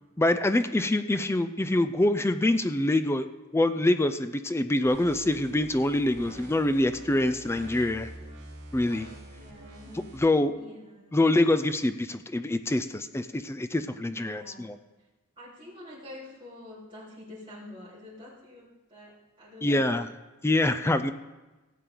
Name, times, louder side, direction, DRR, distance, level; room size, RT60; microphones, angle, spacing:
voice 1, 0.2-3.3 3.5-8.1 8.7-9.1 10.1-10.5 11.1-14.8 19.6-20.1 20.4-21.1, left 1 dB, 10° left, 10 dB, 0.4 m, -25 dB
sound 1, 4.8-10.2, right 1 dB, 50° right, 2.7 m, -46 dB
voice 2, 9.3-10.0 10.5-11.3 14.1-14.7 15.4-20.0, left 1 dB, 25° right, -10 dB, 3.8 m, -47 dB
16.5 x 8.4 x 3.9 m, 1.1 s
head